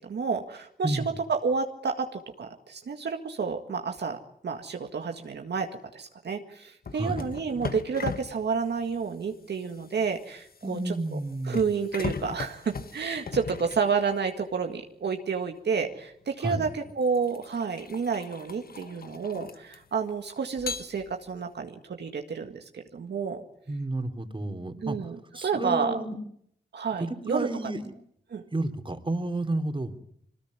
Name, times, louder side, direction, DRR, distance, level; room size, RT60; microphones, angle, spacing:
voice 1, 0.0-10.9 11.4-23.4 24.8-26.0 26.7-27.7 28.3-28.4, right 5 dB, 75° right, 4 dB, 1.9 m, -30 dB
voice 2, 0.8-1.1 6.9-7.3 10.6-11.6 16.4-16.7 23.7-25.0 25.3-26.2 27.0-27.9 28.5-30.0, right 2 dB, 30° right, 6 dB, 3.2 m, -31 dB
sound 1, 6.8-14.4 15.8-16.0 16.7-20.1 20.6-21.5, left 5 dB, 60° left, 1.5 m, -39 dB
23.0 x 19.5 x 9.7 m, 0.71 s
cardioid pair, 50°, 18 cm